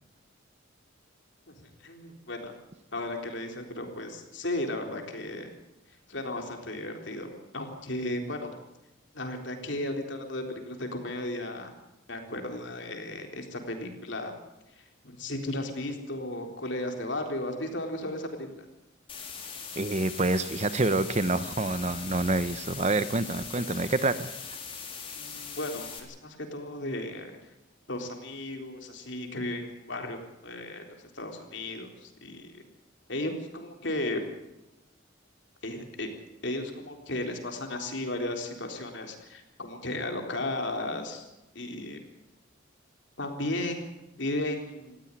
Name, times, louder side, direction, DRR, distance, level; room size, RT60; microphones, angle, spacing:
voice 1, 1.8-2.5 2.9-5.5 6.1-7.3 7.5-8.5 9.1-11.7 12.1-14.3 14.8-18.5 25.1-27.3 27.9-30.2 30.4-32.6 33.1-34.3 35.6-36.1 36.4-41.2 41.5-42.0 43.2-45.0, left 1 dB, 60° left, 4 dB, 3.8 m, -35 dB
sound 1, 19.1-26.0, left 6 dB, 25° left, 3.6 m, -41 dB
voice 2, 19.8-24.3, right 2 dB, 35° right, 13 dB, 0.9 m, -27 dB
19.0 x 15.5 x 9.7 m, 0.94 s
head